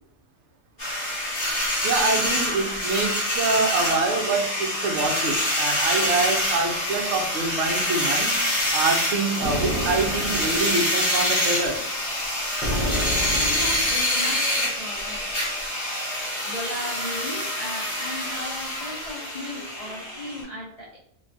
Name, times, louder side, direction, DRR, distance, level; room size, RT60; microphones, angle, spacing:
sound 1, 0.8-20.4, left 1 dB, 30° left, 1.2 m, -26 dB
voice 1, 1.8-8.4 8.7-11.8, right 3 dB, 65° right, 3 dB, 0.8 m, -25 dB
sound 2, 9.4-10.8 12.6-14.0, equal, 5° right, 0.4 m, -29 dB
voice 2, 12.7-15.3 16.4-21.0, left 1 dB, 70° left, -4 dB, 0.3 m, -36 dB
3.2 x 2.2 x 2.5 m, 0.66 s
omnidirectional pair, 1.5 m